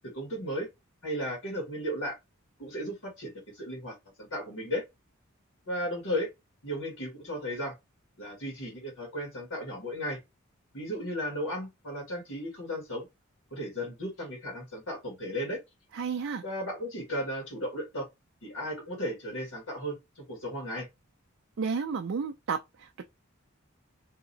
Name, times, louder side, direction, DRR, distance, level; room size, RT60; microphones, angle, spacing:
voice 1, 0.1-0.7 1.0-2.1 2.6-3.9 4.3-4.8 5.7-6.3 6.6-7.7 8.2-10.2 10.7-13.1 13.5-15.6 16.4-18.1 18.4-20.0 20.3-20.9, equal, 70° left, 1.5 m, -35 dB
voice 2, 15.9-16.4 21.6-23.0, right 5 dB, 60° right, 0.4 m, -32 dB
2.9 x 2.7 x 3.9 m
head